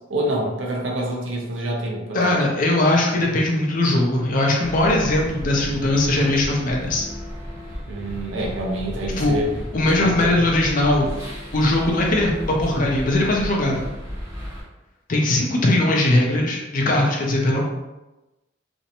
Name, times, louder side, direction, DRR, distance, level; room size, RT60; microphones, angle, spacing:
voice 1, 0.1-2.4 7.9-9.5 10.0-10.3, right 1 dB, 70° right, -1 dB, 0.6 m, -27 dB
voice 2, 2.1-7.0 9.2-9.4 9.7-11.1 11.5-13.9 15.1-17.6, left 1 dB, 40° left, -1 dB, 0.5 m, -20 dB
sound 1, 4.6-14.6, equal, 15° right, 0.7 m, -33 dB
2.5 x 2.1 x 2.8 m, 1.0 s
head